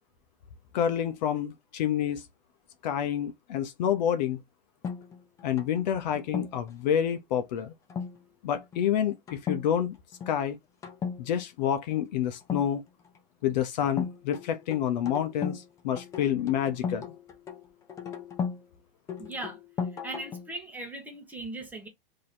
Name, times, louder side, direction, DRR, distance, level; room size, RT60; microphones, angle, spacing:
voice 1, 0.7-2.2 2.8-4.4 5.4-7.7 8.4-10.0 10.3-10.6 11.2-12.8 13.4-17.1, left 9 dB, 50° left, 0.7 m, -28 dB
sound 1, 4.8-6.7 7.9-8.2 8.5-8.8 9.3-9.7 9.9-10.4 10.8-11.2 12.4-13.2 14.0-15.7 16.0-18.6 19.1-20.5, left 6 dB, 10° left, 0.5 m, -36 dB
voice 2, 19.2-19.6 20.0-21.9, right 2 dB, 5° right, 1.0 m, -38 dB
3.0 x 2.8 x 4.1 m
hypercardioid pair, 145°, 29 cm